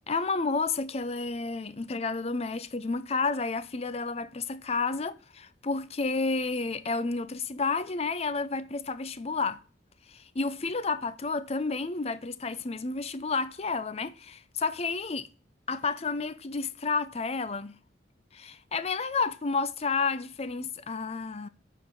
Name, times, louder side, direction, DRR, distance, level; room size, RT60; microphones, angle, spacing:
voice 1, 0.1-9.6 10.1-15.3 15.7-17.8 18.3-21.5, left 4 dB, 35° left, 0.6 m, -31 dB
9.6 x 3.9 x 6.7 m
head